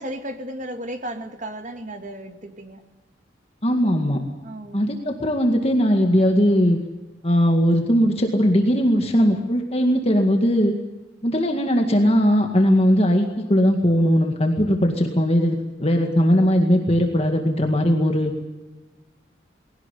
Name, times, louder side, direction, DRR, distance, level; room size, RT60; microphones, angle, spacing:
voice 1, 0.0-2.8 4.4-4.8, right 1 dB, 40° right, 7 dB, 2.1 m, -34 dB
voice 2, 3.6-4.2 4.7-6.8 7.2-10.7 11.2-18.3, equal, 30° left, 3 dB, 2.0 m, -19 dB
20.5 x 17.5 x 10.0 m, 1.2 s
head